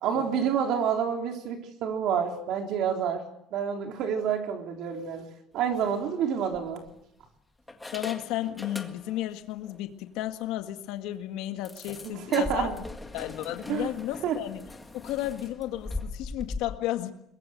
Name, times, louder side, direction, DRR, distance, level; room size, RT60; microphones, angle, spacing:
voice 1, 0.0-3.2 3.5-5.3 5.5-6.8 12.0-12.7 13.7-13.9 14.2-14.4, right 7 dB, 55° right, 3 dB, 3.7 m, -28 dB
sound 1, 5.6-5.8 6.5-7.2 7.7-9.3 9.6-9.8 10.2-10.3 10.6-10.7 11.6-16.6, left 2 dB, 10° left, 1.8 m, -40 dB
voice 2, 7.9-12.7 13.1-14.6 14.9-17.1, left 14 dB, 80° left, 7 dB, 1.8 m, -33 dB
23.0 x 21.5 x 7.9 m, 0.79 s
cardioid pair, 175°, 0 cm